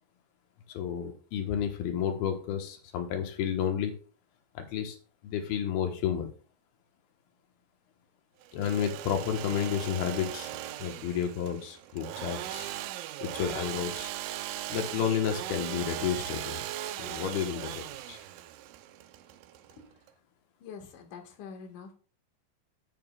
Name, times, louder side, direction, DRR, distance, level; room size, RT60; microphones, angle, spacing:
voice 1, 0.7-3.9 4.5-5.0 5.2-6.3 8.5-10.5 10.8-12.8 13.2-14.1 14.7-16.6 17.0-18.2, left 8 dB, 90° left, 4 dB, 3.0 m, -31 dB
Engine / Sawing, 8.4-20.1, right 13 dB, 80° right, 2.0 m, -39 dB
voice 2, 20.6-21.9, left 6 dB, 65° left, 3 dB, 2.8 m, -45 dB
10.5 x 8.9 x 2.3 m, 0.39 s
omnidirectional pair, 4.2 m